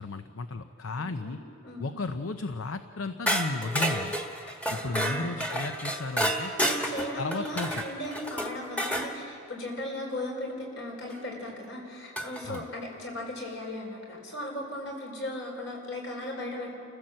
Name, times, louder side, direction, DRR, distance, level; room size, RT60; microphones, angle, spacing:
voice 1, 0.0-1.4 1.8-4.2 4.7-6.5 7.2-7.8 12.5-12.6, left 3 dB, 80° left, 9 dB, 0.7 m, -34 dB
sound 1, 3.3-9.1 11.1-11.2 12.2-12.6, equal, 5° left, 1.5 m, -30 dB
voice 2, 6.6-16.7, left 1 dB, 60° left, 0 dB, 5.3 m, -37 dB
30.0 x 15.0 x 7.7 m, 2.6 s
head